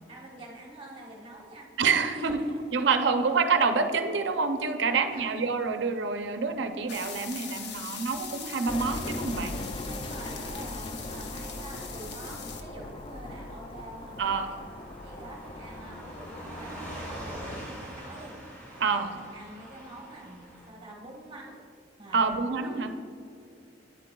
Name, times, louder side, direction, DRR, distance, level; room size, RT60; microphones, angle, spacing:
voice 1, 0.1-1.7 2.1-2.6 3.1-3.3 4.9-5.5 9.9-14.6 15.0-21.6 22.0-22.9, right 1 dB, 30° right, -2 dB, 1.0 m, -46 dB
voice 2, 1.8-2.4 2.7-9.6 14.2-14.5 18.8-19.1 22.1-22.9, right 5 dB, 70° right, 7 dB, 0.5 m, -27 dB
Car passing by / Truck, 6.5-20.7, right 1 dB, 10° left, 1.8 m, -46 dB
sound 1, 6.9-12.6, left 6 dB, 65° left, 0.7 m, -41 dB
sound 2, 8.7-17.6, left 1 dB, 30° left, 0.4 m, -40 dB
9.3 x 7.5 x 2.3 m, 2.4 s
head